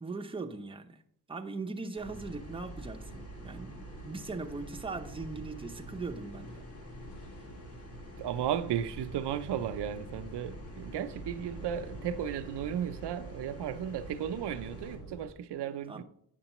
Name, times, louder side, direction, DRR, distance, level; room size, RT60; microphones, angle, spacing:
voice 1, 0.0-1.0 1.3-6.7 15.9-16.0, right 3 dB, 15° right, 0.6 m, -40 dB
sound 1, 2.0-15.3, right 2 dB, 85° left, 1.7 m, -47 dB
sound 2, 2.0-15.0, left 1 dB, 35° left, 1.9 m, -50 dB
voice 2, 8.2-16.0, right 9 dB, 85° right, 0.6 m, -35 dB
9.0 x 6.6 x 3.0 m
wide cardioid pair, 130°, 40 cm